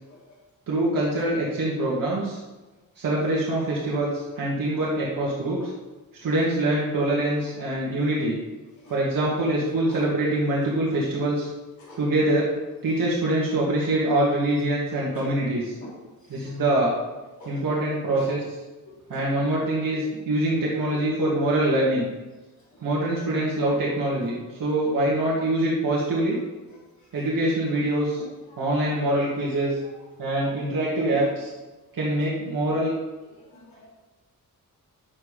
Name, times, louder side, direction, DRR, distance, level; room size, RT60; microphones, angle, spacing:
voice 1, 0.7-2.4 3.0-5.7 6.2-8.4 8.9-11.5 12.0-12.5 12.8-15.7 16.3-16.9 17.5-18.4 19.1-22.1 22.8-26.4 27.1-28.2 28.6-29.8 30.2-31.5 31.9-32.9, right 1 dB, 70° right, -6 dB, 2.2 m, -24 dB
voice 2, 16.2-16.6 17.4-17.6 18.1-18.3 18.9-19.3 19.9-20.0 22.7-23.2 28.2-28.8 29.8-29.9 30.5-30.6 31.1-31.2 33.4-33.9, left 1 dB, 55° left, -5 dB, 3.0 m, -45 dB
9.8 x 7.3 x 5.0 m, 1.2 s
wide cardioid pair, 170°, 34 cm